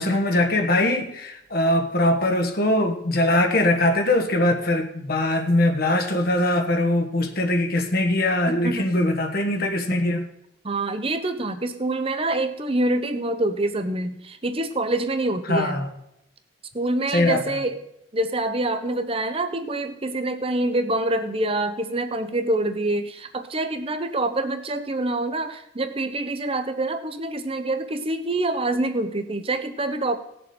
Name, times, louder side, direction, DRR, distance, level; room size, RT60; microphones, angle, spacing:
voice 1, 0.0-10.2 15.5-15.9 17.1-17.5, left 1 dB, 50° left, 4 dB, 1.3 m, -22 dB
voice 2, 8.5-8.9 10.6-15.9 16.7-17.8 18.1-30.2, right 2 dB, 30° right, 8 dB, 0.9 m, -26 dB
18.5 x 7.0 x 4.3 m, 0.81 s
head